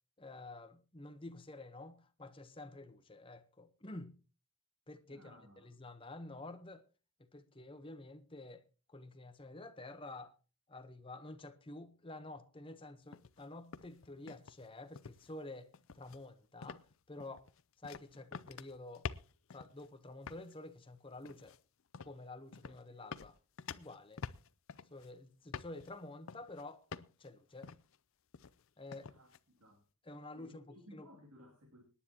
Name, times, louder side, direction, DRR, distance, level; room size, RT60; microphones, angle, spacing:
voice 1, 0.2-4.2 4.9-6.8 7.3-8.6 8.9-10.4 10.7-17.5 17.8-19.1 19.5-21.5 22.0-23.4 23.7-24.2 24.9-26.9 27.2-27.7 28.8-29.1 30.0-31.1, left 2 dB, 25° left, 0.9 m, -50 dB
voice 2, 5.1-5.7 22.6-23.0 29.1-29.8 30.4-31.8, equal, 90° right, 2.6 m, -59 dB
sound 1, 13.1-13.5 13.7-14.7 15.0-15.3 15.7-16.2 16.6-16.9 17.2-19.9 20.2-20.5 21.2-21.6 21.9-22.2 22.5-22.8 23.1-25.1 25.5-25.9 26.3-26.6 26.9-27.3 27.6-28.0 28.3-28.6 28.9-29.4, left 6 dB, 65° left, 0.5 m, -47 dB
25.0 x 10.0 x 2.9 m
head